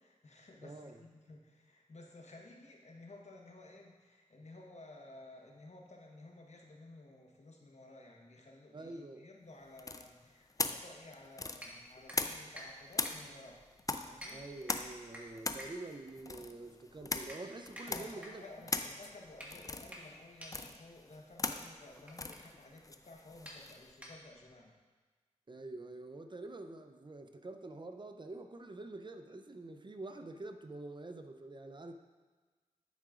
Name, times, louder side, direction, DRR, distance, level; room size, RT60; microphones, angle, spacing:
voice 1, 0.0-13.6 14.1-14.4 17.9-24.7, left 2 dB, 60° left, 0 dB, 1.1 m, -54 dB
voice 2, 0.6-1.0 8.7-9.3 14.3-18.4 25.5-31.9, right 2 dB, 35° right, 6 dB, 0.5 m, -46 dB
sound 1, 9.8-12.6 12.9-23.9, left 3 dB, 25° left, 0.4 m, -40 dB
sound 2, 11.6-24.6, equal, 10° right, 1.5 m, -53 dB
10.5 x 4.9 x 2.4 m, 1.4 s
cardioid pair, 45°, 13 cm